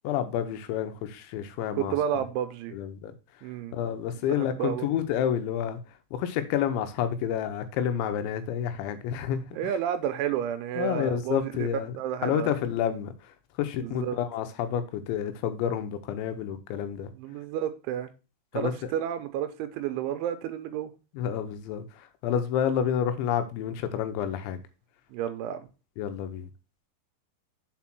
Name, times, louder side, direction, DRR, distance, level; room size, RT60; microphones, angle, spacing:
voice 1, 0.0-2.3 2.7-3.1 3.7-9.8 10.8-12.0 12.2-17.1 18.5-18.9 21.1-24.6 26.0-26.5, left 9 dB, 85° left, 9 dB, 3.2 m, -29 dB
voice 2, 1.8-2.8 3.4-3.8 4.3-4.9 9.5-11.5 12.0-12.5 13.8-14.2 17.2-18.1 18.5-20.9 25.1-25.7, right 10 dB, 90° right, 9 dB, 3.3 m, -31 dB
7.2 x 4.6 x 6.0 m, 0.30 s
omnidirectional pair, 5.3 m